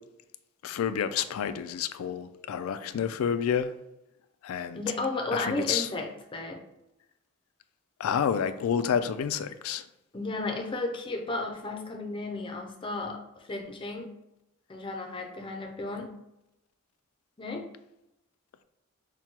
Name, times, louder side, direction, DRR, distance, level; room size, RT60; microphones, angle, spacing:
voice 1, 0.6-3.7 4.4-4.8 5.3-5.9 8.0-9.8, left 8 dB, 85° left, 0.3 m, -29 dB
voice 2, 4.7-6.6 10.1-14.1 14.7-16.1 17.4-17.6, left 2 dB, 25° left, 0.5 m, -34 dB
6.0 x 2.2 x 2.8 m
head